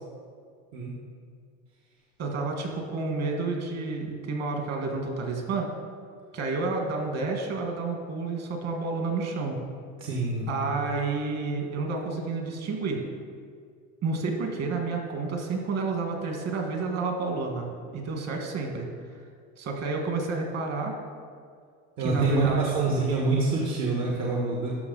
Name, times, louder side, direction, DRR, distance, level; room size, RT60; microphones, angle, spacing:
voice 1, 2.2-5.7 6.3-9.6 10.5-13.0 14.0-18.9 19.6-21.0 22.0-23.0, right 3 dB, 50° right, 2 dB, 1.8 m, -30 dB
voice 2, 10.0-10.5 22.0-24.8, right 3 dB, 70° right, -3 dB, 1.7 m, -26 dB
13.0 x 6.0 x 4.1 m, 2.1 s
cardioid pair, 135°, 34 cm